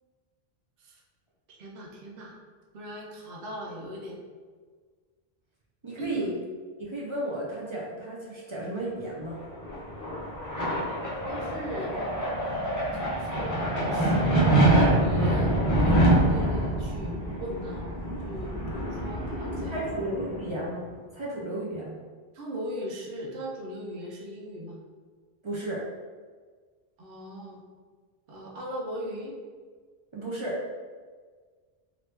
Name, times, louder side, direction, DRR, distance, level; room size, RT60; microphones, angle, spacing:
voice 1, 1.5-2.4 2.7-4.2 6.0-6.3 11.3-12.0 12.9-17.9 18.2-19.9 22.3-24.8 27.0-27.6 28.3-29.4, equal, 65° right, -2 dB, 0.8 m, -38 dB
voice 2, 5.8-6.3 6.8-9.4 19.7-20.8 21.1-22.0 25.4-25.8 30.1-30.6, right 1 dB, 40° right, -6 dB, 0.4 m, -33 dB
sound 1, 9.4-20.7, right 1 dB, 20° left, 0.6 m, -26 dB
2.8 x 2.5 x 3.3 m, 1.5 s
omnidirectional pair, 1.1 m